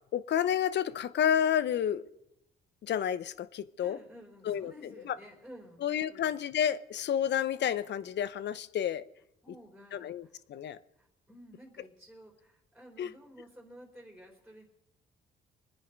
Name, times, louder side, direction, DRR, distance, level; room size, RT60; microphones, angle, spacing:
voice 1, 0.1-2.1 2.8-4.0 4.5-4.7 5.0-5.2 5.8-9.0 9.9-10.8 13.0-13.1, left 9 dB, 65° left, 0.8 m, -30 dB
voice 2, 3.8-6.3 9.4-14.6, equal, ahead, 4.2 m, -53 dB
25.0 x 9.9 x 5.2 m
cardioid pair, 90°, 20 cm